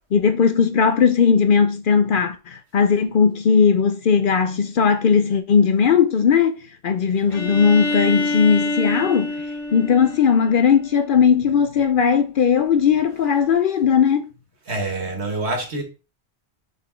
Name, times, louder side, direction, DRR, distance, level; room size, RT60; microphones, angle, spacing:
voice 1, 0.1-9.3 9.7-14.3, left 6 dB, 60° left, 0.6 m, -18 dB
Bowed string instrument, 7.3-11.1, left 2 dB, 45° left, 2.1 m, -27 dB
voice 2, 14.7-15.8, right 2 dB, 70° right, 1.7 m, -26 dB
6.0 x 4.0 x 4.4 m
omnidirectional pair, 1.1 m